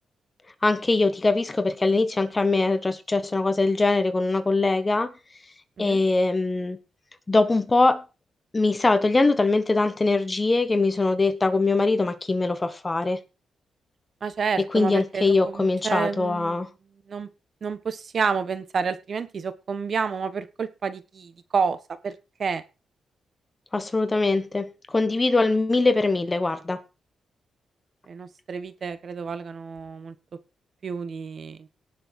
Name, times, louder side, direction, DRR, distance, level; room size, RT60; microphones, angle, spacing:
voice 1, 0.6-5.1 5.8-6.8 7.3-8.0 8.5-13.2 14.7-16.7 23.7-26.8, left 3 dB, 20° left, 1.3 m, -22 dB
voice 2, 14.2-16.6 17.1-17.3 17.6-21.8 22.0-22.1 22.4-22.6 28.1-30.1 30.8-31.7, right 5 dB, 50° right, 1.4 m, -29 dB
18.5 x 6.6 x 4.7 m
cardioid pair, 115°, 0 cm